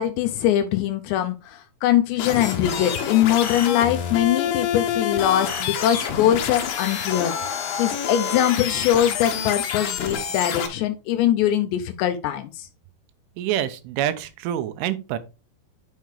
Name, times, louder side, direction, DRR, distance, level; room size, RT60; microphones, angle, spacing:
voice 1, 0.0-12.7, left 11 dB, 80° left, 2.7 m, -22 dB
sound 1, 2.2-10.7, left 7 dB, 60° left, 2.5 m, -27 dB
voice 2, 13.4-15.2, right 11 dB, 85° right, 3.3 m, -26 dB
9.3 x 6.4 x 3.2 m
omnidirectional pair, 5.6 m